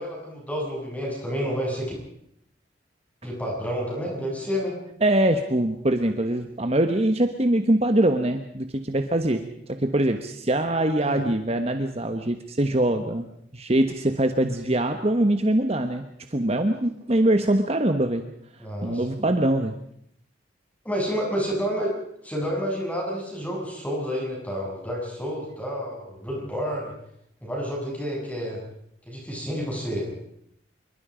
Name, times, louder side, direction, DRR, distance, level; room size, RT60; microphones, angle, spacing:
voice 1, 0.0-1.9 3.2-4.8 11.0-11.2 18.6-19.2 20.8-21.9 22.2-26.9 27.4-28.6 29.1-30.1, equal, 10° left, -2 dB, 7.9 m, -29 dB
voice 2, 5.0-13.3 13.5-16.0 16.3-18.2 18.8-19.7, right 1 dB, 35° right, 7 dB, 1.2 m, -23 dB
26.0 x 23.0 x 5.1 m, 0.73 s
head